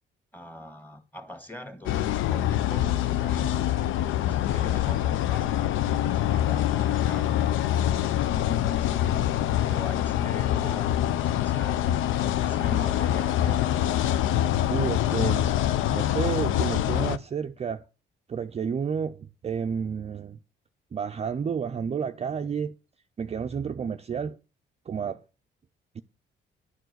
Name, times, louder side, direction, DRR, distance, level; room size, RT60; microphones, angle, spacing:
voice 1, 0.3-13.7, left 1 dB, 10° left, 1.8 m, -43 dB
sound 1, 1.9-17.2, left 12 dB, 85° left, 0.5 m, -25 dB
voice 2, 14.7-15.5 15.9-17.8 18.3-20.4 20.9-22.7 23.2-24.4 24.9-25.2 26.0-26.1, right 6 dB, 30° right, 0.4 m, -30 dB
11.0 x 4.6 x 7.8 m
cardioid pair, 90°, 20 cm